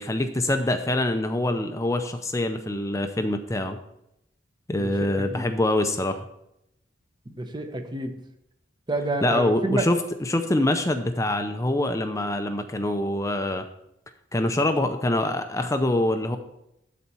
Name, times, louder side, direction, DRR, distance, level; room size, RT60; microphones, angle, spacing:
voice 1, 0.0-3.8 4.7-6.3 9.2-13.7 14.3-16.4, left 1 dB, 15° left, 7 dB, 0.5 m, -25 dB
voice 2, 4.8-5.4 7.4-8.1 8.9-9.8, right 2 dB, 20° right, 6 dB, 0.8 m, -29 dB
12.5 x 4.2 x 5.5 m, 0.80 s
head